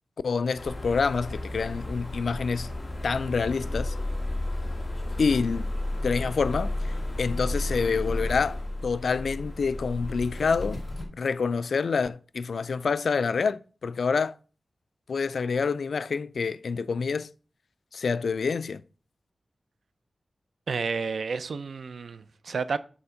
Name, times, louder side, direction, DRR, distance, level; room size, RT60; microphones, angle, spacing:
voice 1, 0.2-2.7 3.0-3.9 5.2-5.7 6.0-6.7 7.2-8.6 8.8-10.8 11.2-14.3 15.1-17.3 17.9-18.8, left 5 dB, 85° left, 0.3 m, -27 dB
sound 1, 0.6-11.0, left 1 dB, 30° left, 1.6 m, -32 dB
voice 2, 20.7-22.8, right 5 dB, 90° right, 0.4 m, -31 dB
7.0 x 4.3 x 5.0 m
wide cardioid pair, 120°, 0 cm